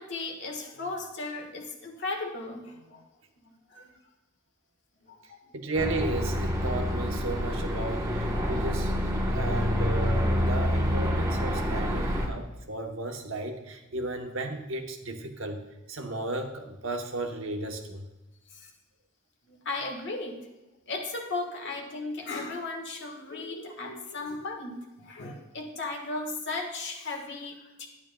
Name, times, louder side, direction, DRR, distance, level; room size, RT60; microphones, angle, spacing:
voice 1, 0.0-3.0 3.7-3.9 5.1-5.5 9.4-9.7 18.5-18.7 19.5-20.4 20.9-27.9, left 3 dB, 60° left, 2 dB, 1.4 m, -36 dB
voice 2, 5.5-8.9 9.3-15.6 15.9-18.1, right 2 dB, 70° right, 4 dB, 1.0 m, -34 dB
sound 1, 5.7-12.3, equal, 15° right, 1.0 m, -27 dB
11.5 x 9.9 x 2.2 m, 1.0 s
head